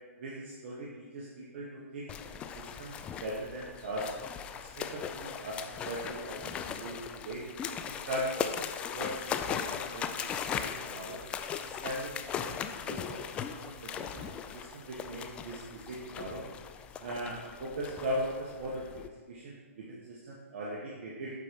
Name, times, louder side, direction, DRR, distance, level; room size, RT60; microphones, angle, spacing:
voice 1, 0.2-2.9 3.2-4.1 4.5-7.4 7.9-11.2 11.6-12.1 12.4-14.2 14.5-16.4 17.0-21.3, right 1 dB, 50° right, -5 dB, 1.5 m, -39 dB
sound 1, 2.1-19.1, left 8 dB, 15° left, 0.3 m, -39 dB
8.3 x 4.5 x 5.2 m, 1.4 s
hypercardioid pair, 150°, 8 cm